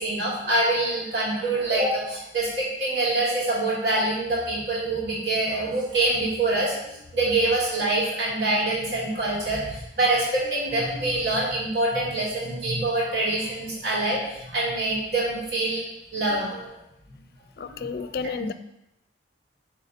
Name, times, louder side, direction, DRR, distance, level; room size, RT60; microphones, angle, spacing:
voice 1, 0.0-15.8 16.1-16.8 17.6-18.4, right 2 dB, 65° right, -6 dB, 2.6 m, -25 dB
voice 2, 17.6-18.5, left 5 dB, 55° left, 12 dB, 0.3 m, -31 dB
9.2 x 3.2 x 4.3 m, 0.86 s
head